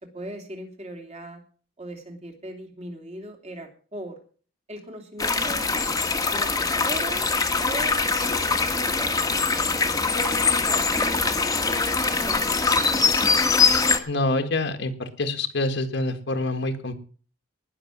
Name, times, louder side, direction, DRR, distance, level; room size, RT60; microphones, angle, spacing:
voice 1, 0.0-1.4 1.8-4.2 4.7-5.8 6.3-7.3 7.6-9.2 10.0-11.3 12.0-12.7, right 1 dB, 30° right, 4 dB, 3.0 m, -38 dB
sound 1, 5.2-14.0, left 4 dB, 20° left, 1.5 m, -23 dB
voice 2, 14.1-16.9, left 2 dB, 60° left, 6 dB, 1.6 m, -26 dB
19.5 x 6.7 x 7.3 m, 0.42 s
head